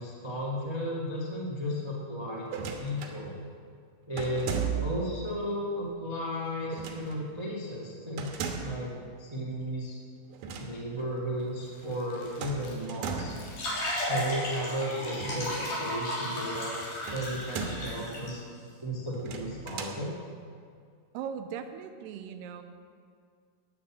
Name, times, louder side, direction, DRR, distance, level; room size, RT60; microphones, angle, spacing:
voice 1, 0.0-3.3 4.1-4.5 4.8-8.9 9.2-10.0 10.6-13.4 14.1-16.7 17.1-18.4 18.8-20.1, equal, 40° right, -4 dB, 0.4 m, -34 dB
sound 1, 2.5-3.2 4.2-5.1 6.7-7.2 8.2-8.9 10.3-10.7 11.0-11.1 12.4-13.5 15.1-15.9 17.1-18.0 19.1-20.0, right 6 dB, 65° right, 2.6 m, -36 dB
Crumpling crinkling, 11.1-17.8, left 2 dB, 80° left, 4.4 m, -52 dB
sound 2, 13.3-18.3, left 1 dB, 50° left, 4.9 m, -34 dB
voice 2, 21.1-22.6, right 8 dB, 90° right, 7 dB, 2.9 m, -38 dB
12.5 x 9.6 x 7.4 m, 2.1 s
omnidirectional pair, 4.6 m